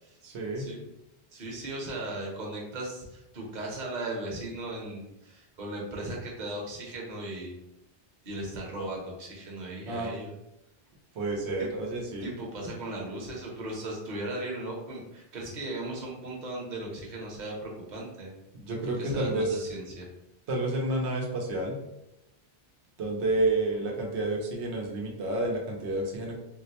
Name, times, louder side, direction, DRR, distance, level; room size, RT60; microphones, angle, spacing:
voice 1, 0.2-0.7 9.8-10.1 11.2-12.3 18.5-19.6 20.5-21.8 23.0-26.4, right 2 dB, 90° right, -1 dB, 1.0 m, -30 dB
voice 2, 1.3-7.6 8.2-10.3 11.6-11.7 12.2-18.3 18.8-20.1, right 1 dB, 45° right, -2 dB, 0.9 m, -37 dB
3.8 x 2.1 x 2.8 m, 0.87 s
omnidirectional pair, 1.1 m